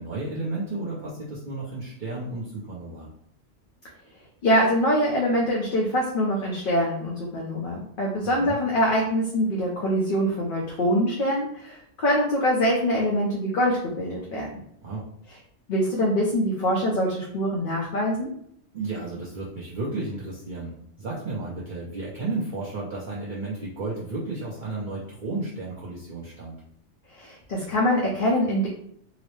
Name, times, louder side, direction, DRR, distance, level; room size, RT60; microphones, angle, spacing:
voice 1, 0.0-3.1 8.2-8.6 14.8-15.0 18.7-26.5, right 2 dB, 50° right, -7 dB, 0.8 m, -33 dB
voice 2, 4.4-14.5 15.7-18.3 27.1-28.7, equal, 55° left, -3 dB, 0.7 m, -24 dB
3.9 x 2.0 x 3.1 m, 0.68 s
omnidirectional pair, 1.2 m